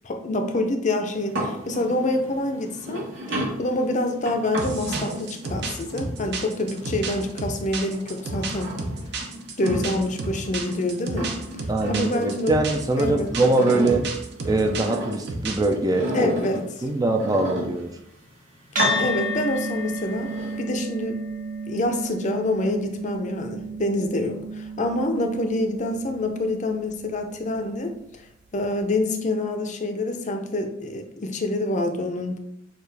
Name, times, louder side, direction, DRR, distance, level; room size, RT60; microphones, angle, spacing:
voice 1, 0.0-3.0 3.6-8.7 9.6-11.3 11.9-12.5 13.0-13.3 16.1-16.6 18.9-21.2 21.7-27.9 28.5-32.4, left 1 dB, 40° left, 5 dB, 0.6 m, -26 dB
sound 1, 1.1-7.5 7.9-10.8 11.1-12.9 13.2-15.3 15.9-18.1 18.6-19.6 20.0-20.6, right 1 dB, 75° right, 1.6 m, -33 dB
sound 2, 4.6-15.7, right 3 dB, 60° right, 0.7 m, -32 dB
voice 2, 11.7-14.0 14.4-16.3 16.8-17.9, right 2 dB, 20° right, 4 dB, 0.4 m, -22 dB
sound 3, 18.8-27.4, equal, 45° right, 1.5 m, -32 dB
6.5 x 2.4 x 3.3 m, 0.76 s
head